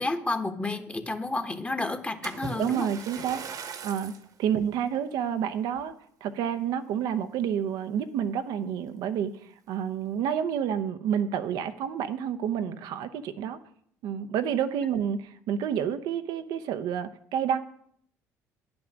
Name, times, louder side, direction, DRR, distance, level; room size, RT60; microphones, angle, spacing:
voice 1, 0.0-2.9, left 2 dB, 15° left, 7 dB, 1.3 m, -31 dB
Splash splatter, 2.2-4.3 4.9-5.2 5.8-5.9, right 5 dB, 55° right, 1.2 m, -39 dB
voice 2, 2.6-3.4 3.8-4.1 4.4-5.9 6.2-13.6 14.0-17.6, right 8 dB, 70° right, 9 dB, 0.7 m, -29 dB
10.0 x 6.1 x 6.3 m, 0.65 s
supercardioid pair, 65°, 7 cm